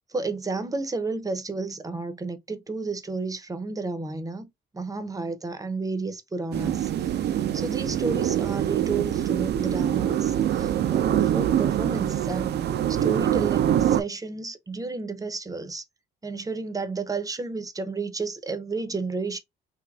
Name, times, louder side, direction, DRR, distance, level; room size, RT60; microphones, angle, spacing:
voice 1, 0.1-4.5 4.7-12.6 12.9-15.8 16.2-19.4, right 3 dB, 20° right, 0.6 m, -32 dB
sound 1, 6.5-14.0, right 11 dB, 55° right, 0.4 m, -24 dB
3.3 x 2.8 x 2.3 m
cardioid pair, 90°, 20 cm